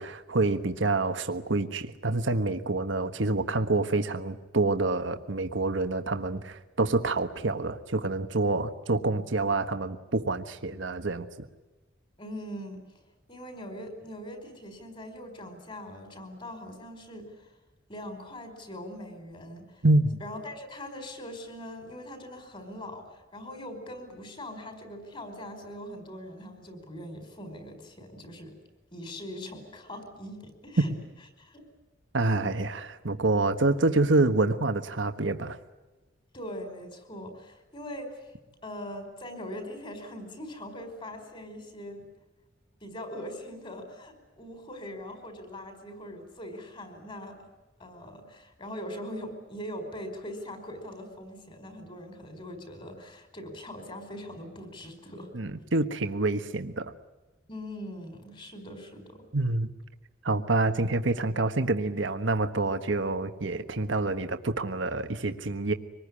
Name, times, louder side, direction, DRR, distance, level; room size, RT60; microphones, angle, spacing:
voice 1, 0.0-11.3 19.8-20.2 32.1-35.6 55.3-56.9 59.3-59.7 60.2-65.7, right 2 dB, 75° right, 8 dB, 1.4 m, -27 dB
voice 2, 12.2-12.8 13.3-17.5 17.9-19.8 20.2-28.6 28.9-30.9 31.4-31.6 36.3-38.3 38.6-42.1 42.8-47.4 47.8-55.3 57.5-59.2, equal, 25° left, 7 dB, 4.9 m, -41 dB
25.5 x 20.5 x 9.9 m, 1.2 s
head